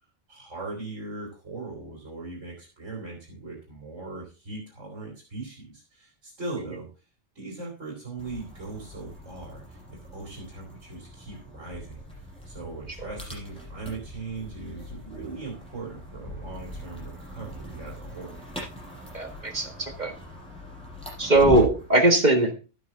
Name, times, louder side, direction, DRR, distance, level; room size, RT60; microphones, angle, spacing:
voice 1, 0.3-6.9 7.3-18.4, right 3 dB, 70° right, -2 dB, 4.0 m, -39 dB
sound 1, 8.2-21.9, equal, 5° left, 7.2 m, -39 dB
voice 2, 19.1-20.1 21.2-22.6, right 2 dB, 35° right, 5 dB, 1.8 m, -20 dB
12.5 x 9.3 x 3.9 m, 0.33 s
omnidirectional pair, 1.3 m